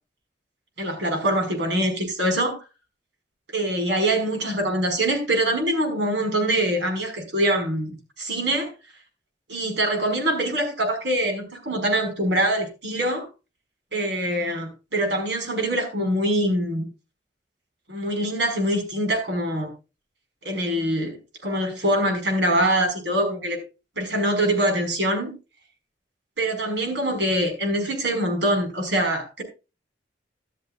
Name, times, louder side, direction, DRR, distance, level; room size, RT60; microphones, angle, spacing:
voice 1, 0.8-2.6 3.5-8.7 9.5-13.3 13.9-16.9 17.9-19.7 20.4-21.2 21.4-23.6 24.0-25.3 26.4-29.4, right 1 dB, 75° right, 4 dB, 5.5 m, -24 dB
14.0 x 13.0 x 2.5 m, 0.30 s
head